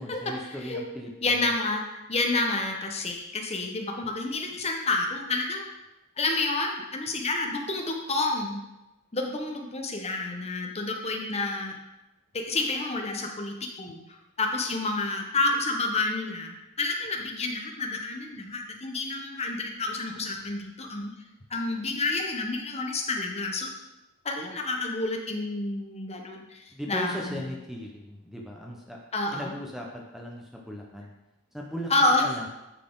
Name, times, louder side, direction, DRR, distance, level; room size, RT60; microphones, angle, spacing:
voice 1, 0.0-1.1 1.4-1.5 26.7-29.0 29.3-31.1 31.5-32.5, equal, ahead, -1 dB, 0.7 m, -38 dB
voice 2, 1.2-5.7 6.2-8.6 9.1-11.7 12.3-14.0 14.4-21.1 21.5-23.7 24.2-27.5 29.1-29.5 31.9-32.2, left 2 dB, 30° left, 2 dB, 0.9 m, -29 dB
10.0 x 4.1 x 3.8 m, 0.99 s
head